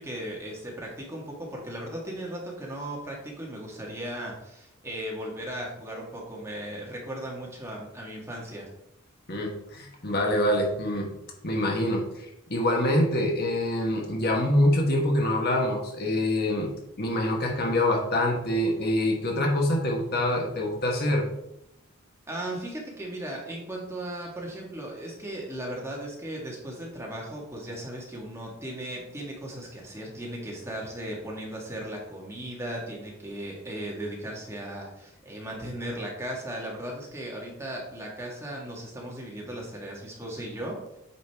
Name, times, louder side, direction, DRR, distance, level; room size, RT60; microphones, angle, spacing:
voice 1, 0.0-8.7 22.3-41.0, right 1 dB, 15° right, -2 dB, 1.6 m, -37 dB
voice 2, 9.3-11.1 11.4-16.7 17.0-21.3, left 1 dB, 50° left, 0 dB, 1.4 m, -25 dB
8.5 x 5.2 x 3.5 m, 0.81 s
head